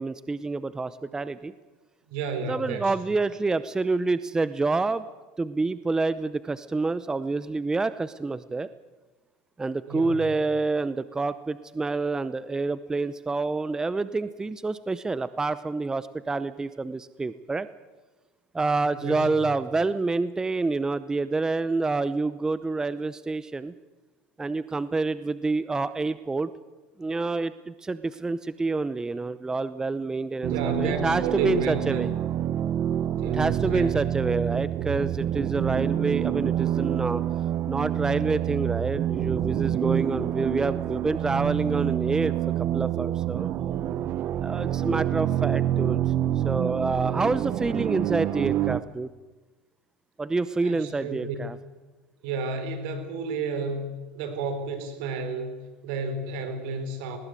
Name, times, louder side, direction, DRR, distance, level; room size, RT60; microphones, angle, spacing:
voice 1, 0.0-1.5 2.5-5.0 5.4-8.7 9.6-17.7 18.5-23.7 24.4-26.5 27.0-30.5 30.8-32.1 33.3-37.2 37.7-42.4 42.7-43.5 44.4-46.0 46.4-49.1 50.2-51.6, right 3 dB, 10° right, 14 dB, 0.7 m, -27 dB
voice 2, 2.1-2.9 9.9-10.3 19.0-19.5 30.5-32.0 33.1-34.0 50.6-51.4 52.2-55.6 55.8-57.2, right 4 dB, 70° right, 8 dB, 4.6 m, -32 dB
sound 1, 30.4-48.8, right 11 dB, 45° right, 0.9 m, -27 dB
19.5 x 19.5 x 8.2 m, 1.2 s
supercardioid pair, 115°, 5 cm